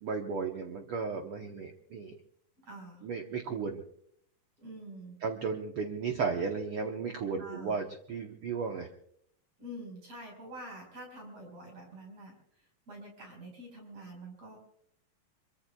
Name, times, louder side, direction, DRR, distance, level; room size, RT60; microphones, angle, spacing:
voice 1, 0.0-2.2 3.0-3.8 5.2-8.9, right 5 dB, 90° right, 3 dB, 1.2 m, -34 dB
voice 2, 2.6-3.1 4.6-5.2 7.4-7.8 9.6-14.6, right 1 dB, 45° right, 1 dB, 5.9 m, -47 dB
26.0 x 23.5 x 2.3 m, 0.69 s
omnidirectional pair, 4.1 m